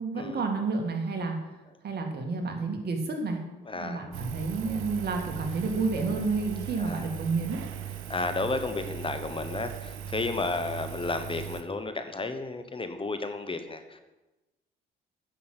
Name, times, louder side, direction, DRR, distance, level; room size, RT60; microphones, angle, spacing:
voice 1, 0.0-1.4 1.8-3.4 3.7-7.6, right 4 dB, 55° right, 3 dB, 2.2 m, -30 dB
voice 2, 3.7-4.0 6.8-7.1 8.1-14.0, left 3 dB, 25° left, 9 dB, 1.0 m, -32 dB
Engine, 4.1-11.6, right 9 dB, 85° right, 0.9 m, -39 dB
9.8 x 6.3 x 8.0 m, 1.1 s
cardioid pair, 90°, 20 cm